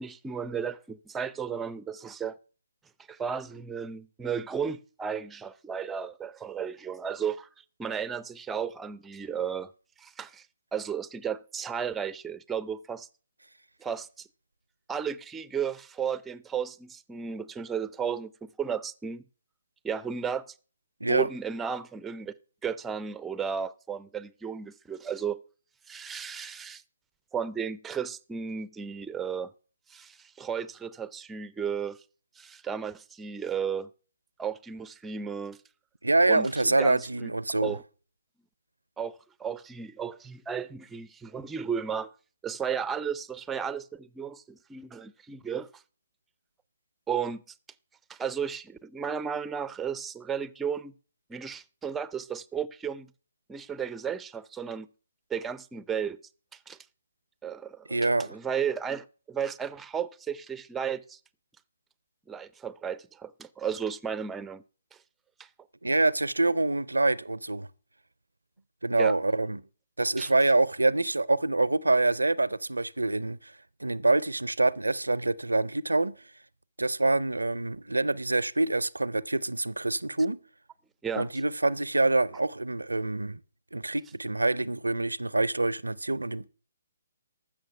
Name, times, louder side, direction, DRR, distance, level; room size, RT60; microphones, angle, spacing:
voice 1, 0.0-2.4 3.1-7.5 7.8-9.7 10.0-10.5 10.7-13.1 13.8-14.3 14.9-19.2 19.8-20.5 21.1-22.3 22.6-25.4 25.9-26.8 27.3-29.5 29.9-32.0 32.4-33.9 34.4-35.6 36.3-37.3 37.6-37.8 39.0-42.1 42.4-45.8 47.1-47.4 48.1-50.9 51.3-53.1 53.5-54.9 55.3-56.2 56.5-56.8 57.4-61.2 62.3-64.6 65.4-65.5 69.0-69.1 70.2-70.3 81.0-81.3, right 7 dB, 10° right, 0.5 m, -34 dB
voice 2, 36.0-37.8 57.9-58.4 65.8-67.7 68.8-69.6 70.0-73.5 73.8-76.1 76.8-80.4 81.2-83.4 83.7-86.5, right 2 dB, 90° right, 0.4 m, -26 dB
14.5 x 6.3 x 5.8 m
figure-of-eight pair, 140°, 0 cm